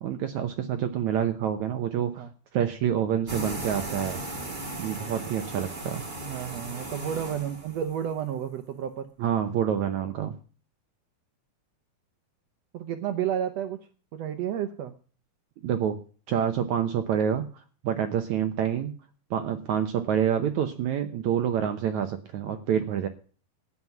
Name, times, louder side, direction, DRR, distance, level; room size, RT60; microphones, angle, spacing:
voice 1, 0.0-2.2 2.5-4.2 4.8-6.0 9.2-10.3 15.6-16.0 16.3-17.5 17.8-18.9 19.3-23.1, right 9 dB, 70° right, 8 dB, 1.9 m, -27 dB
sound 1, 3.3-8.1, right 1 dB, 30° right, 0.8 m, -37 dB
voice 2, 6.2-9.1 12.7-13.8 14.1-14.9 20.0-20.1, right 9 dB, 90° right, 8 dB, 1.4 m, -31 dB
13.0 x 9.5 x 5.9 m, 0.38 s
omnidirectional pair, 4.2 m